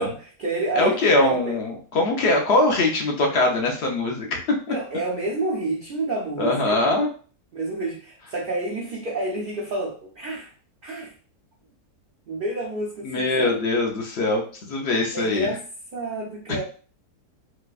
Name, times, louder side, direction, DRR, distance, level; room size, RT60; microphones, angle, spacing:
voice 1, 0.0-1.5 4.7-6.9 7.5-10.5 10.8-11.1 12.3-13.6 15.1-15.6 15.9-16.6, right 2 dB, 65° right, -4 dB, 0.5 m, -29 dB
voice 2, 0.7-4.6 6.4-7.1 13.0-15.5 16.5-16.6, left 2 dB, 55° left, 1 dB, 0.7 m, -22 dB
4.1 x 2.2 x 2.4 m, 0.40 s
omnidirectional pair, 1.7 m